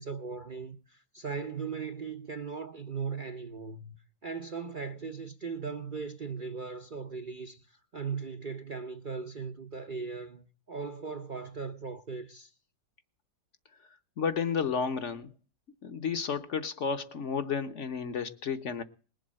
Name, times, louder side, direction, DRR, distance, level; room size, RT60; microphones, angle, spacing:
voice 1, 0.0-4.0 4.2-12.5, right 5 dB, 45° right, 0.6 m, -38 dB
voice 2, 14.2-15.3 15.8-18.8, left 6 dB, 50° left, 1.1 m, -32 dB
20.0 x 7.7 x 7.5 m
omnidirectional pair, 2.0 m